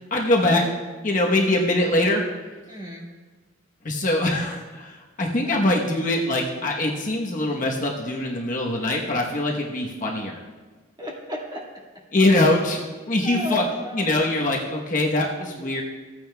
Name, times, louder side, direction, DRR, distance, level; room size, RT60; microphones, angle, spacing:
voice 1, 0.1-0.6 1.0-2.2 3.8-10.4 12.1-13.6 13.9-15.8, left 1 dB, 40° left, -1 dB, 1.0 m, -23 dB
voice 2, 2.7-3.1 11.0-11.6 12.3-12.5 13.2-14.3, equal, 20° right, -2 dB, 1.7 m, -34 dB
15.5 x 9.2 x 2.2 m, 1.3 s
head